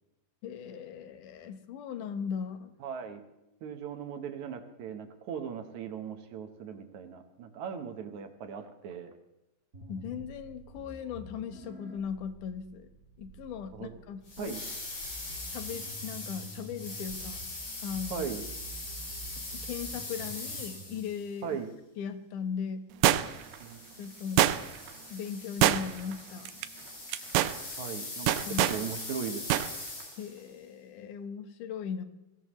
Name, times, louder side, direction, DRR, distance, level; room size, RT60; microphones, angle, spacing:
voice 1, 0.4-2.8 9.9-12.9 13.2-14.5 15.4-17.4 17.8-18.3 19.5-21.6 22.0-22.9 24.0-24.5 25.1-26.5 28.5-28.8 30.2-32.0, left 7 dB, 65° left, 9 dB, 2.5 m, -38 dB
voice 2, 2.8-3.2 3.6-9.1 13.7-13.9 14.4-14.6 18.1-18.4 21.4-21.7 23.6-23.8 27.8-29.7, right 7 dB, 65° right, 6 dB, 2.1 m, -38 dB
sound 1, 9.7-21.0, right 2 dB, 25° right, 3.9 m, -48 dB
sound 2, 14.3-21.3 23.2-30.4, left 2 dB, 50° left, 6.3 m, -41 dB
sound 3, 23.0-23.5 24.4-24.9 25.6-26.1 26.5-26.7 27.1-27.6 28.3-28.8 29.5-29.7 30.0-30.1, right 13 dB, 85° right, 2.6 m, -24 dB
23.0 x 17.0 x 3.1 m, 0.92 s
omnidirectional pair, 4.3 m